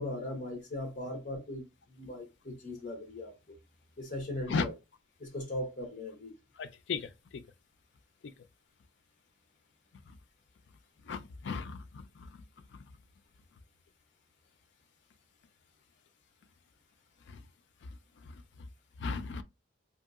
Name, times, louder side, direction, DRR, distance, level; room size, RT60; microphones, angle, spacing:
voice 1, 0.0-3.6 4.0-4.7 5.2-6.3, left 1 dB, 40° left, 0.9 m, -39 dB
voice 2, 6.6-7.4 11.1-12.4 17.3-17.4 19.0-19.4, left 4 dB, 65° left, 0.4 m, -36 dB
2.8 x 2.7 x 2.4 m
head